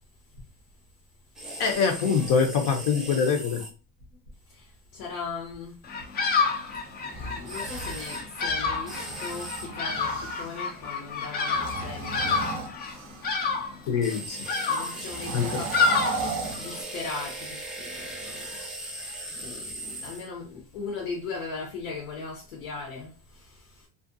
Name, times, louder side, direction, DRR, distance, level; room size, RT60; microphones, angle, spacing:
sound 1, 1.3-3.7 7.5-8.2 8.9-9.7 14.0-20.3, right 1 dB, ahead, 0.7 m, -38 dB
voice 1, 1.6-3.6 13.9-14.4 15.3-15.6, left 6 dB, 60° left, 0.7 m, -24 dB
voice 2, 4.5-5.8 6.7-12.5 14.7-16.2 16.6-23.9, left 4 dB, 85° left, 0.9 m, -38 dB
Bird vocalization bird call bird song, 5.8-16.8, left 4 dB, 25° left, 0.4 m, -29 dB
sound 2, 6.9-10.7 11.4-13.4 15.0-17.3, right 4 dB, 35° right, 0.4 m, -37 dB
2.5 x 2.2 x 2.5 m
supercardioid pair, 125°, 39 cm